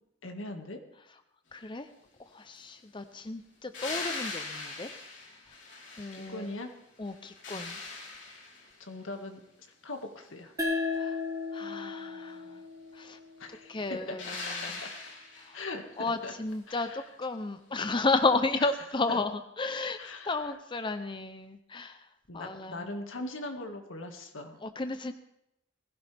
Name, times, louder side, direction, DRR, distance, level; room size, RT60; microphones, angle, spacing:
voice 1, 0.2-0.8 6.1-6.7 8.8-9.4 9.8-10.6 13.4-14.2 14.4-14.9 15.5-16.3 16.7-17.1 19.1-19.2 20.0-20.5 22.3-24.6, left 2 dB, 90° left, 4 dB, 2.0 m, -40 dB
voice 2, 1.5-1.9 2.3-5.0 6.0-6.5 7.0-7.8 11.0-11.2 11.5-12.6 12.9-13.2 13.7-14.8 15.4-15.6 16.0-19.3 19.6-20.0 20.2-22.0 22.3-22.9 24.6-25.1, left 3 dB, 25° left, 9 dB, 0.7 m, -33 dB
sound 1, 3.7-6.7 7.1-8.8 14.2-15.6 18.2-18.3, left 3 dB, 65° left, 4.0 m, -40 dB
sound 2, 10.6-13.8, left 3 dB, 20° right, 2.9 m, -35 dB
20.5 x 16.0 x 3.5 m, 0.83 s
head